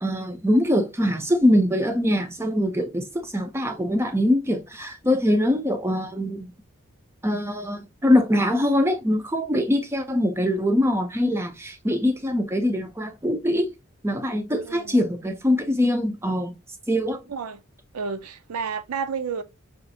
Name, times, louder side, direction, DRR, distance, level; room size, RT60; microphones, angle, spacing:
voice 1, 0.0-6.5 7.2-13.7 14.0-16.5 16.9-17.2, left 1 dB, 10° right, 0.4 m, -23 dB
voice 2, 14.6-15.0 17.3-17.6 17.9-19.4, right 6 dB, 85° right, 0.5 m, -31 dB
4.9 x 2.5 x 2.6 m
head